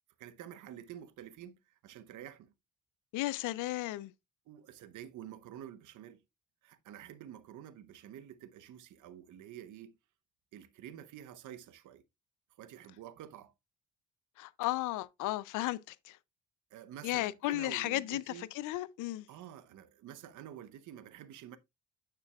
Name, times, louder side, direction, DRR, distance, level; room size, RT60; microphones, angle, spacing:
voice 1, 0.2-2.5 4.5-6.2 6.6-10.0 10.5-12.0 12.6-13.5 16.7-18.5 19.3-21.6, right 10 dB, 80° right, 0.9 m, -49 dB
voice 2, 3.1-4.1 14.4-16.2 17.0-19.3, left 17 dB, 90° left, 0.5 m, -34 dB
9.6 x 6.0 x 2.3 m
cardioid pair, 90°, 30 cm